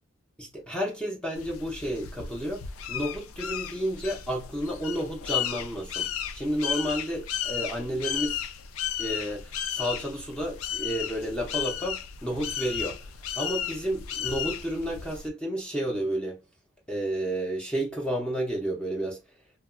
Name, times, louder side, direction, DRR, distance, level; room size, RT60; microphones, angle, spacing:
voice 1, 0.4-8.4 9.0-13.1 13.4-16.4 16.9-19.2, equal, 5° left, 0.5 m, -31 dB
sound 1, 1.3-15.3, left 9 dB, 85° left, 0.4 m, -34 dB
2.8 x 2.2 x 2.4 m
head